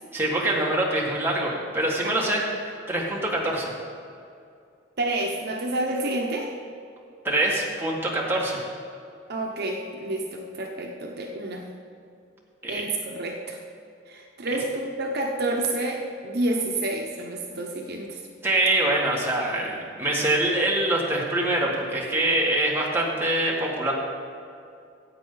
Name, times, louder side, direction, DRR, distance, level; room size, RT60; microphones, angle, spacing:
voice 1, 0.1-3.8 7.2-8.6 12.6-12.9 18.4-23.9, right 1 dB, 10° right, -4 dB, 1.9 m, -24 dB
voice 2, 5.0-6.5 9.3-11.6 12.7-13.6 14.1-18.2, right 2 dB, 60° right, 1 dB, 0.9 m, -29 dB
14.5 x 8.4 x 4.0 m, 2.4 s
head